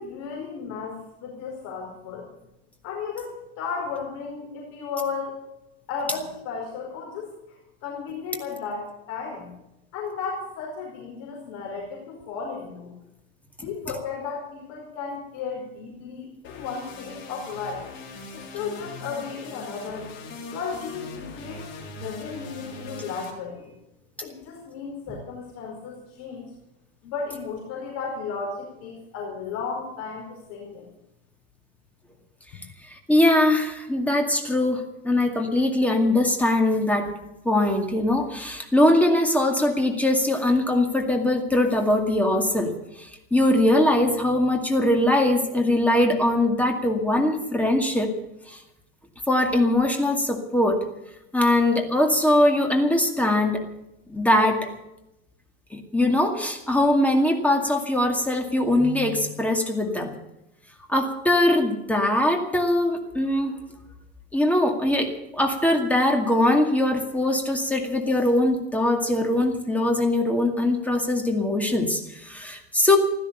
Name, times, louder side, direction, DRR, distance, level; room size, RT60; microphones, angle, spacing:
voice 1, 0.0-2.3 2.8-5.3 5.9-9.5 9.9-12.9 13.6-17.8 18.3-20.1 20.5-21.7 22.0-23.7 24.2-26.5 27.0-30.9, left 5 dB, 55° left, -1 dB, 4.9 m, -34 dB
sound 1, 16.4-23.3, left 3 dB, 40° left, 4.1 m, -40 dB
voice 2, 32.9-37.1 37.4-42.7 43.0-48.1 48.5-48.6 49.3-50.8 51.3-53.6 54.1-54.7 55.7-60.1 60.9-63.6 64.3-73.0, left 1 dB, 5° left, 3 dB, 2.2 m, -21 dB
16.0 x 12.5 x 6.9 m, 0.89 s
supercardioid pair, 140°, 30 cm